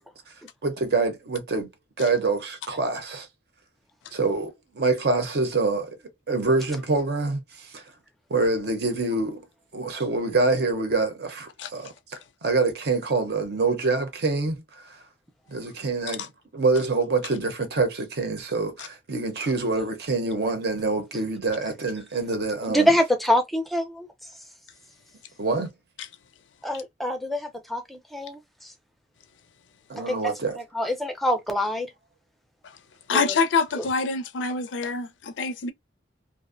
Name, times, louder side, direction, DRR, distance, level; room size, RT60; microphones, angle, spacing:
voice 1, 0.6-1.7 2.0-3.3 4.1-6.0 6.3-7.8 8.3-9.4 9.7-14.6 15.5-16.3 16.5-22.9 25.4-25.7 29.9-30.6, right 3 dB, 60° right, 0.7 m, -26 dB
voice 2, 22.7-24.1 26.6-28.7 30.1-30.2 30.6-31.9 33.1-33.4 33.8-33.9, equal, ahead, 0.4 m, -25 dB
voice 3, 33.1-35.7, left 4 dB, 90° left, 0.4 m, -25 dB
2.5 x 2.0 x 2.4 m
head